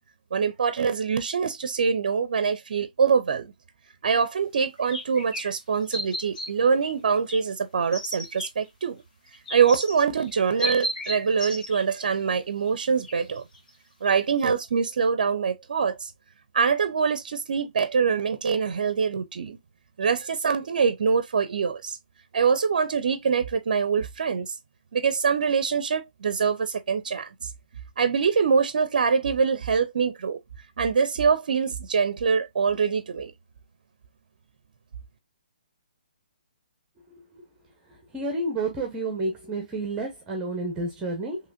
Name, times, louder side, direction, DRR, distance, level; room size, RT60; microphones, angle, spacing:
voice 1, 0.3-3.5 4.0-9.0 9.5-13.4 14.0-16.1 16.5-19.6 20.0-22.0 22.3-24.5 24.9-27.5 28.0-30.4 30.8-33.3, right 6 dB, 60° right, 0.5 m, -24 dB
sound 1, 4.1-4.2 4.6-5.5 5.9-6.5 6.8-7.4 7.9-8.5 9.3-12.1 12.7-12.8 13.0-13.7 14.1-14.2 14.4-14.5, equal, 60° left, 2.0 m, -33 dB
voice 2, 37.9-41.4, right 2 dB, 15° right, 0.9 m, -30 dB
4.8 x 3.0 x 2.5 m
figure-of-eight pair, 140°, 5 cm